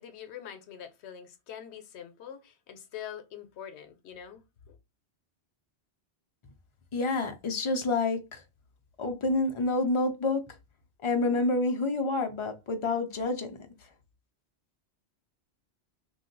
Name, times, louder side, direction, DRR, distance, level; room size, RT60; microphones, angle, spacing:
voice 1, 0.0-4.8, left 9 dB, 85° left, 0.9 m, -44 dB
voice 2, 6.9-8.4 9.0-10.4 11.0-13.5, left 2 dB, 40° left, 0.5 m, -28 dB
2.6 x 2.3 x 3.8 m
omnidirectional pair, 1.1 m